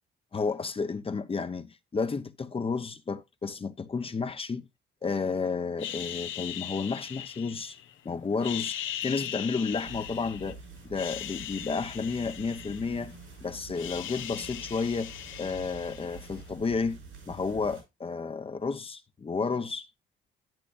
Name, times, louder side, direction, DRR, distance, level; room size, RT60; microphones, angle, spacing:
voice 1, 0.3-4.7 5.0-7.8 8.0-10.6 10.8-13.1 13.4-15.1 15.4-17.0 17.3-19.9, left 4 dB, 30° left, 0.8 m, -31 dB
sound 1, 5.8-7.9 8.3-10.5 10.9-13.3 13.5-16.4, left 11 dB, 80° left, 0.9 m, -39 dB
sound 2, 9.7-17.8, right 4 dB, 85° right, 5.8 m, -47 dB
10.5 x 8.9 x 2.5 m
cardioid pair, 90°, 20 cm